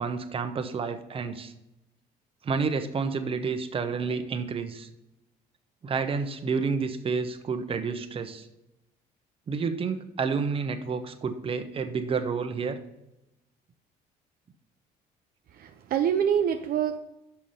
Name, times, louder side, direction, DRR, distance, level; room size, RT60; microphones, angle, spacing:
voice 1, 0.0-1.5 2.4-4.9 5.8-8.5 9.5-12.8, right 5 dB, 35° right, 8 dB, 0.9 m, -30 dB
voice 2, 15.6-17.0, right 8 dB, 60° right, 7 dB, 0.6 m, -25 dB
5.9 x 5.7 x 6.5 m, 0.90 s
cardioid pair, 110°, 17 cm